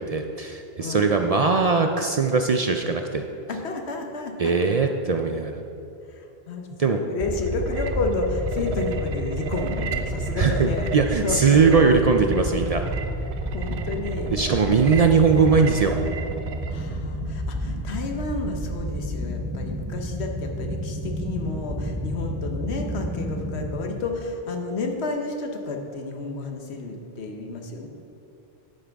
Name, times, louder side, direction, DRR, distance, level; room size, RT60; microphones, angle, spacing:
voice 1, 0.0-3.2 4.4-5.6 6.8-7.0 10.4-12.8 14.3-15.9, right 5 dB, 50° right, 4 dB, 0.4 m, -20 dB
voice 2, 3.5-4.5 6.1-10.9 11.2-11.8 13.5-14.6 14.9-15.2 16.7-27.9, left 3 dB, 90° left, 4 dB, 1.2 m, -31 dB
sound 1, 7.2-23.7, equal, 20° right, 0.8 m, -31 dB
sound 2, 7.3-16.7, right 6 dB, 90° right, 0.9 m, -34 dB
11.0 x 9.0 x 3.5 m, 2.8 s
omnidirectional pair, 1.1 m